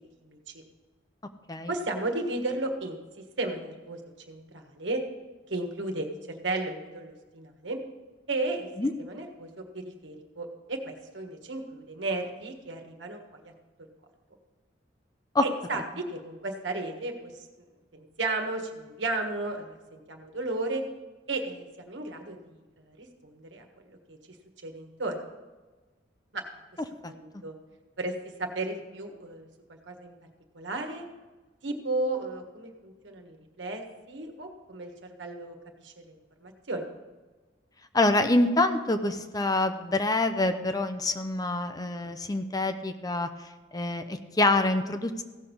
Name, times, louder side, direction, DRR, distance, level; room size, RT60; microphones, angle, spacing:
voice 1, 0.2-0.6 1.7-3.0 3.4-4.0 4.3-5.0 5.5-6.1 6.4-7.8 8.3-8.7 9.0-13.5 15.4-17.3 17.9-20.8 21.3-22.6 22.9-24.2 24.6-25.2 26.3-26.4 27.0-27.5 28.0-28.1 28.4-29.5 29.9-30.1 30.5-31.0 31.6-35.6 35.8-36.1 36.4-36.9, right 2 dB, 85° right, 4 dB, 1.5 m, -34 dB
voice 2, 37.9-43.3 43.7-45.2, left 2 dB, 20° left, 9 dB, 0.6 m, -26 dB
16.0 x 6.4 x 5.4 m, 1.2 s
head